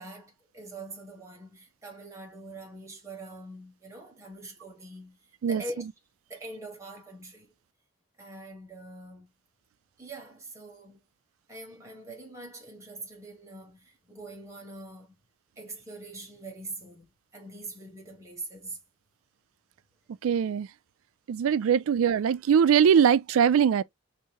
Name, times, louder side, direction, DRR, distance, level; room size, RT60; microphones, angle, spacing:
voice 1, 0.0-5.9 6.3-7.5 8.2-9.3 10.0-11.0 11.5-15.1 15.6-18.8, right 2 dB, 15° right, 1.1 m, -43 dB
voice 2, 20.2-20.7 21.3-23.8, right 8 dB, 85° right, 0.3 m, -21 dB
5.7 x 2.7 x 2.9 m
head